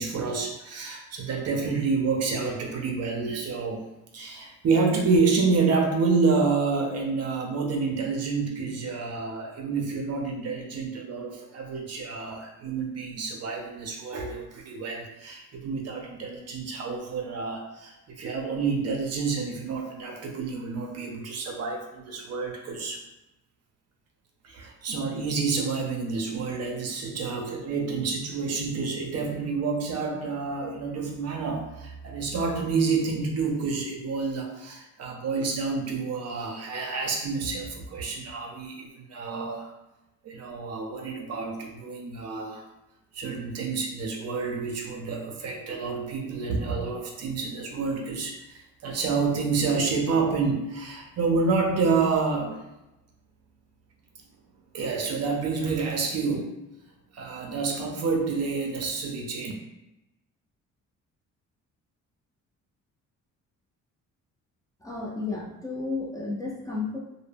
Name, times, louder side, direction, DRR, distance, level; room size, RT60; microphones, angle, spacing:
voice 1, 0.0-3.8 4.1-23.0 24.4-39.7 40.2-42.7 43.1-52.6 54.7-56.5 57.1-59.5, right 4 dB, 55° right, 1 dB, 0.6 m, -28 dB
voice 2, 64.8-67.0, left 3 dB, 10° left, -4 dB, 0.6 m, -32 dB
2.1 x 2.0 x 3.3 m, 0.93 s
cardioid pair, 90°, 30 cm